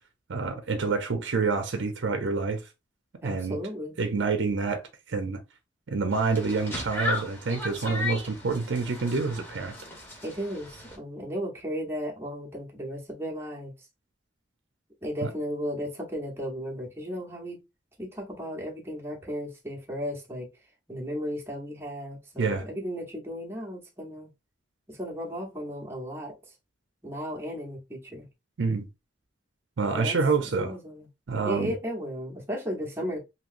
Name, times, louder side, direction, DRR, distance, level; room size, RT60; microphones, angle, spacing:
voice 1, 0.3-2.6 3.2-3.6 4.0-4.8 5.1-5.4 5.9-9.8 15.2-15.3 22.4-22.6 28.6-28.9 29.8-30.7 31.3-31.7, right 4 dB, 65° right, 0.6 m, -27 dB
voice 2, 3.2-4.0 10.2-13.7 15.0-17.6 18.0-20.5 20.9-24.3 24.9-26.4 27.0-28.2 29.9-31.1 31.4-33.2, equal, 15° right, 0.9 m, -35 dB
sound 1, 6.1-11.0, left 2 dB, 10° left, 1.1 m, -36 dB
3.0 x 2.8 x 2.5 m
head